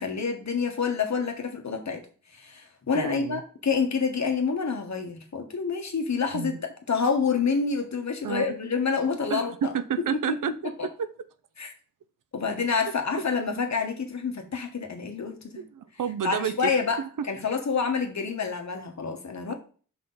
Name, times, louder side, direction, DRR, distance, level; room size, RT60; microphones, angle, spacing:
voice 1, 0.0-2.0 2.3-6.5 6.9-9.7 10.1-10.4 11.6-11.7 12.3-15.6 16.2-17.0 17.3-19.5, left 5 dB, 60° left, 5 dB, 1.4 m, -28 dB
voice 2, 2.9-3.4 6.3-6.6 8.2-8.6 9.3-11.1 15.6-16.7 17.0-17.3 19.5-19.6, right 8 dB, 80° right, 12 dB, 0.6 m, -30 dB
5.6 x 5.5 x 4.0 m, 0.40 s
wide cardioid pair, 95°, 32 cm